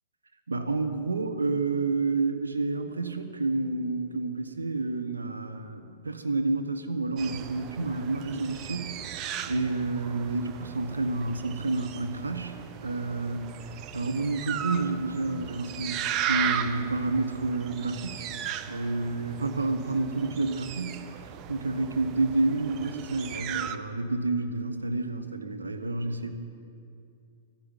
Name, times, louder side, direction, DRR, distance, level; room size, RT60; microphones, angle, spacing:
voice 1, 0.5-13.5 13.9-18.3 18.7-21.1 21.5-26.4, right 3 dB, 85° right, 7 dB, 1.1 m, -29 dB
sound 1, 7.2-23.8, right 9 dB, 35° right, 0.6 m, -37 dB
12.5 x 9.8 x 8.9 m, 2.4 s
figure-of-eight pair, 105°, 0 cm